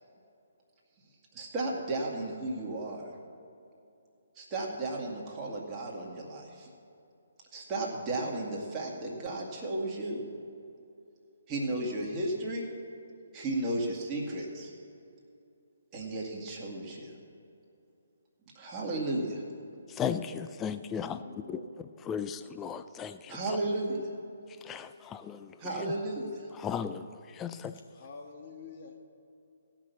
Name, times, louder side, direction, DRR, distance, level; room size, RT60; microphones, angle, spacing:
voice 1, 1.3-3.0 4.4-6.7 7.5-10.2 11.5-12.7 13.3-14.7 15.9-17.1 18.5-19.4 23.3-24.1 25.6-26.5, right 2 dB, 20° right, -3 dB, 2.1 m, -34 dB
voice 2, 19.9-21.2 22.1-23.6 24.6-25.9 26.6-27.7, left 8 dB, 15° left, 11 dB, 0.4 m, -36 dB
voice 3, 20.8-21.7 27.2-27.6 27.9-29.0, left 4 dB, 40° left, 1 dB, 1.4 m, -48 dB
17.5 x 6.0 x 7.0 m, 2.7 s
figure-of-eight pair, 135°, 0 cm